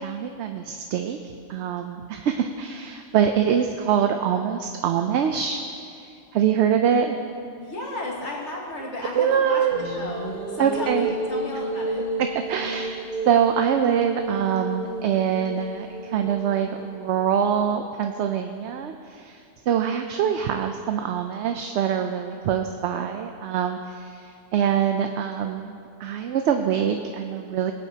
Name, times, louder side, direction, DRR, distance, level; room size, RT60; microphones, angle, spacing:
voice 1, 0.0-5.6 6.0-7.2 9.1-10.0 10.6-11.1 12.5-27.7, right 8 dB, 75° right, 5 dB, 0.8 m, -24 dB
voice 2, 7.6-9.6 9.9-12.0 19.8-20.0, left 1 dB, 75° left, -2 dB, 2.0 m, -34 dB
sound 1, 9.7-17.1, right 2 dB, 50° right, 1.4 m, -32 dB
21.0 x 8.3 x 2.8 m, 2.5 s
omnidirectional pair, 1.2 m